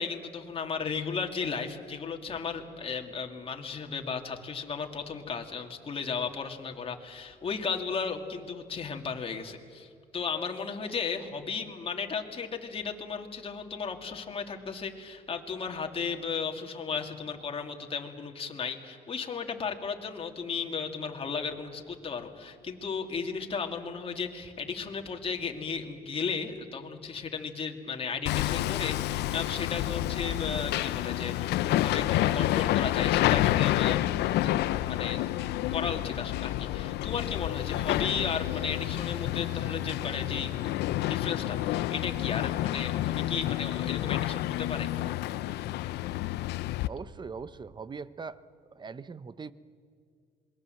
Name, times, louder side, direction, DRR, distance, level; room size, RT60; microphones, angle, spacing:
voice 1, 0.0-34.0 34.3-35.2 35.7-40.7 41.1-45.1, left 5 dB, 35° left, 3 dB, 2.4 m, -35 dB
Hammer, 28.3-46.9, left 15 dB, 80° left, 0.7 m, -29 dB
voice 2, 46.9-48.4 48.7-49.5, right 5 dB, 25° right, 16 dB, 0.8 m, -41 dB
27.5 x 21.5 x 7.8 m, 2.3 s
cardioid pair, 110°, 17 cm